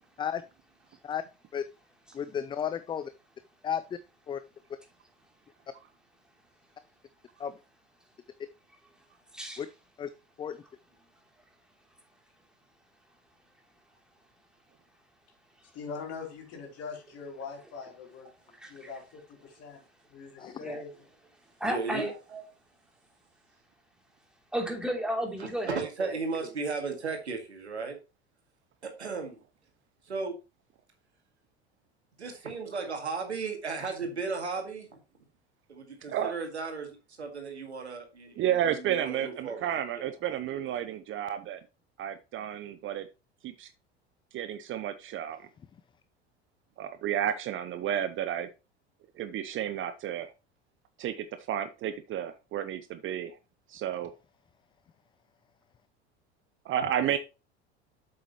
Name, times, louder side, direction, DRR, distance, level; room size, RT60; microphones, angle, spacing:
voice 1, 2.1-3.1 3.6-4.0 4.3-4.4 7.4-7.5 9.6-9.7 10.0-10.1 10.4-10.6 20.4-20.5, left 8 dB, 15° left, 0.4 m, -33 dB
voice 2, 9.3-9.7 15.6-15.7 18.5-18.9 20.6-20.8 21.6-22.1 24.5-26.5, equal, ahead, 3.1 m, -34 dB
voice 3, 15.7-18.3 18.7-19.8 20.1-20.9, left 5 dB, 50° left, 3.8 m, -42 dB
voice 4, 21.6-22.4 25.6-28.0 28.8-29.4 30.0-30.4 32.2-34.9 35.7-40.1, right 4 dB, 85° right, 2.1 m, -35 dB
voice 5, 38.4-41.6 42.0-43.1 43.4-43.7 44.3-45.5 46.8-48.5 49.2-50.3 51.0-53.4 53.7-54.1 56.6-57.2, right 10 dB, 40° right, 0.7 m, -32 dB
7.7 x 7.7 x 3.1 m
figure-of-eight pair, 75°, 33 cm